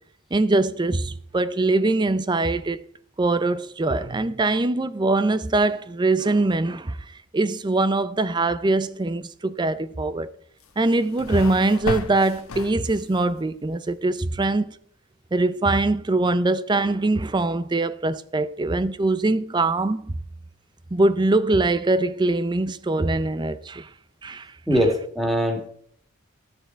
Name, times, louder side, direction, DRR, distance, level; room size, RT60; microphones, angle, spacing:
voice 1, 0.3-2.8 3.2-10.3 10.8-14.8 15.3-20.1 20.9-23.9 24.2-24.8, right 2 dB, 20° right, 0.4 m, -23 dB
sound 1, 10.6-13.3, left 3 dB, 80° left, 1.1 m, -34 dB
voice 2, 24.7-25.7, equal, ahead, 2.0 m, -22 dB
14.0 x 6.8 x 4.5 m
head